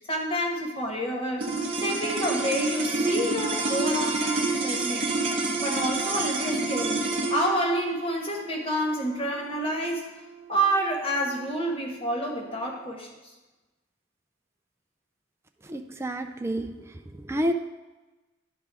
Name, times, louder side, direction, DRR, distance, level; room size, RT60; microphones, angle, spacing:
voice 1, 0.1-1.5 1.8-5.3 5.6-10.1 10.5-13.1, right 1 dB, 30° left, 0 dB, 1.3 m, -28 dB
sound 1, 1.4-11.8, right 3 dB, 30° right, 0.9 m, -29 dB
voice 2, 15.6-16.7 17.1-17.5, equal, 15° right, 5 dB, 0.4 m, -29 dB
11.0 x 3.8 x 4.7 m, 1.1 s
head